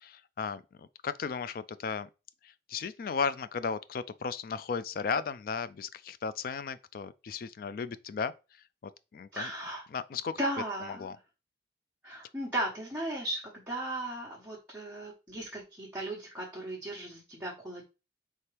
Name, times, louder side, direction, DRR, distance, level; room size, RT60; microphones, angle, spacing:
voice 1, 0.0-2.1 2.4-8.3 8.8-9.5 9.9-10.3 10.8-11.2, left 5 dB, 50° left, 0.3 m, -35 dB
voice 2, 9.3-9.8 10.4-11.1 12.0-17.9, right 1 dB, 10° right, 1.1 m, -36 dB
4.4 x 3.5 x 3.3 m
head